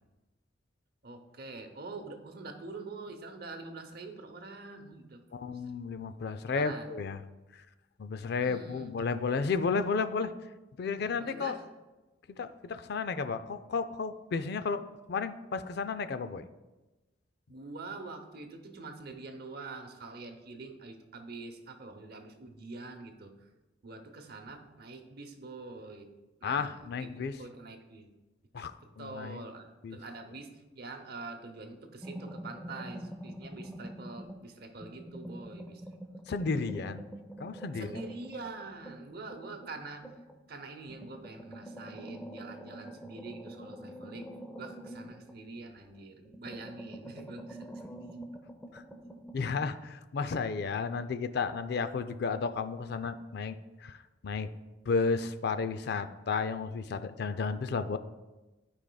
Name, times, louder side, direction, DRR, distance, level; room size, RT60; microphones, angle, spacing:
voice 1, 1.0-5.2 6.5-6.9 8.3-8.9 11.0-11.6 17.5-23.5 23.8-26.1 26.4-28.1 28.8-35.8 37.7-40.1 40.5-44.3 44.6-47.7, right 3 dB, 60° right, 5 dB, 0.8 m, -45 dB
voice 2, 5.3-7.2 7.5-7.6 8.0-10.3 10.8-11.5 12.4-14.8 15.1-16.5 26.4-27.3 28.5-29.4 29.8-30.0 36.3-37.0 37.4-38.0 48.7-48.8 49.3-54.5 54.9-58.0, left 4 dB, 60° left, 11 dB, 0.4 m, -33 dB
sound 1, 32.0-34.5 34.8-40.4 40.9-45.9 46.3-49.6, right 1 dB, 5° left, 0.6 m, -46 dB
13.5 x 4.9 x 2.3 m, 1.1 s
head